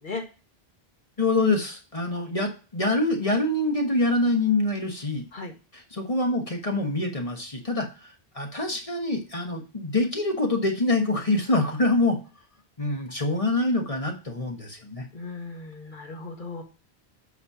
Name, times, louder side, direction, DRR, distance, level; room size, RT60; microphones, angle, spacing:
voice 1, 1.2-5.2 5.7-12.2 12.8-15.1, left 2 dB, 35° left, 2 dB, 1.3 m, -25 dB
voice 2, 15.1-16.6, left 3 dB, 50° left, 1 dB, 1.7 m, -36 dB
8.4 x 3.3 x 5.4 m, 0.34 s
omnidirectional pair, 1.1 m